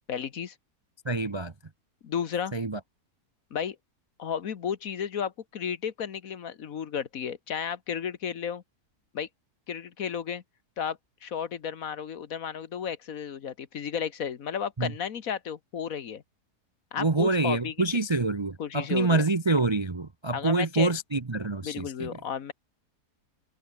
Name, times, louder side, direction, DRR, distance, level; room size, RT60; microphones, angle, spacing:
voice 1, 0.1-0.5 2.0-2.5 3.5-3.8 4.2-8.6 9.1-9.3 9.7-10.4 10.8-16.2 16.9-17.7 18.6-19.3 20.3-20.9 21.6-22.5, left 8 dB, 60° left, 1.5 m, -33 dB
voice 2, 1.0-1.5 2.5-2.8 14.8-14.9 17.0-22.2, right 3 dB, 25° right, 0.6 m, -26 dB
omnidirectional pair, 1.7 m